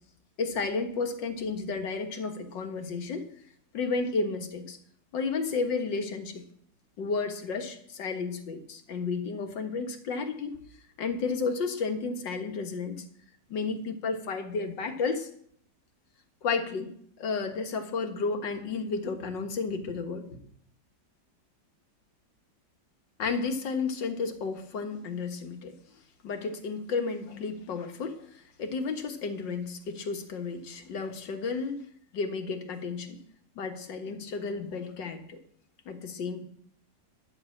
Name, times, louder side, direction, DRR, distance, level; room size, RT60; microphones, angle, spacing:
voice 1, 0.4-3.2 3.7-4.8 5.1-6.4 7.0-10.6 11.0-13.0 13.5-15.3 16.4-20.4 23.2-25.7 26.2-31.8 32.1-33.2 33.6-35.4 35.9-36.4, left 4 dB, 85° left, 5 dB, 2.0 m, -32 dB
11.5 x 6.4 x 8.4 m, 0.65 s
omnidirectional pair, 1.9 m